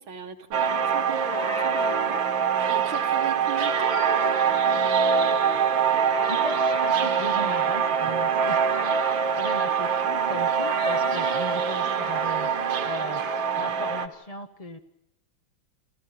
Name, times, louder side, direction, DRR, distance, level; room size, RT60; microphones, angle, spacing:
voice 1, 0.0-4.5, right 5 dB, 85° right, 5 dB, 2.5 m, -38 dB
sound 1, 0.5-14.1, right 6 dB, 70° right, 2.0 m, -24 dB
voice 2, 6.3-8.7 9.4-12.5 12.8-13.2 13.5-14.8, left 2 dB, 35° left, 6 dB, 0.5 m, -37 dB
28.5 x 15.0 x 8.9 m, 0.84 s
omnidirectional pair, 2.2 m